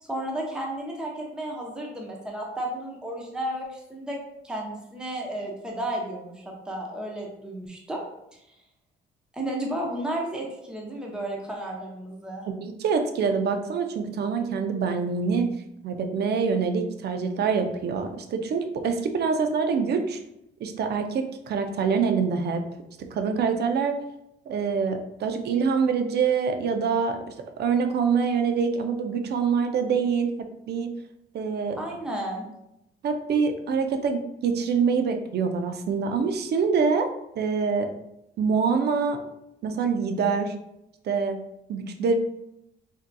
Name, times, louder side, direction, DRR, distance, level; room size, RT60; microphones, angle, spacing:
voice 1, 0.0-4.2 4.4-8.0 8.3-8.4 9.3-12.4 31.8-32.4, right 1 dB, 5° right, -1 dB, 0.7 m, -33 dB
voice 2, 12.6-15.5 15.8-20.2 20.6-22.6 23.1-24.0 24.5-27.2 27.6-30.9 31.3-31.8 33.0-37.1 37.4-37.9 38.4-39.2 39.6-40.5 41.0-41.4 41.7-42.1, right 5 dB, 55° right, 7 dB, 0.5 m, -25 dB
3.6 x 2.7 x 2.2 m, 0.83 s
cardioid pair, 90°, 20 cm